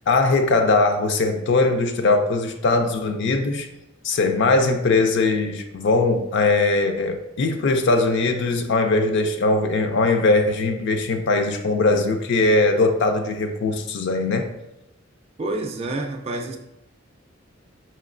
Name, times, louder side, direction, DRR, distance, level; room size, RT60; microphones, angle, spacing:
voice 1, 0.1-3.7 4.0-14.5, left 3 dB, 65° left, 6 dB, 0.4 m, -20 dB
voice 2, 15.4-16.6, right 2 dB, 30° right, 1 dB, 0.4 m, -28 dB
4.3 x 3.1 x 2.5 m, 0.90 s
head